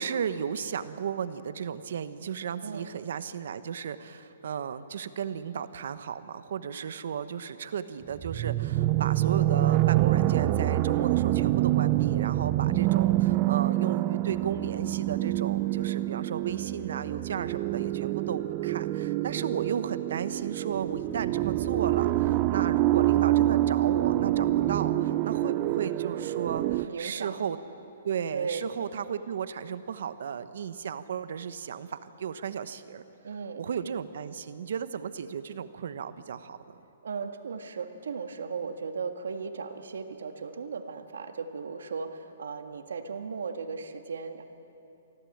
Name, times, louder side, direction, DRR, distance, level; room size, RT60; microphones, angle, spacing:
voice 1, 0.0-27.6 28.0-33.0 33.6-36.8, right 7 dB, 60° right, 13 dB, 0.9 m, -34 dB
sound 1, 8.1-26.9, right 15 dB, 25° right, 0.4 m, -26 dB
voice 2, 26.9-27.4 28.3-28.6 33.2-33.7 37.0-44.5, right 5 dB, 90° right, 7 dB, 1.7 m, -36 dB
24.0 x 15.0 x 8.7 m, 3.0 s
hypercardioid pair, 170°, 0 cm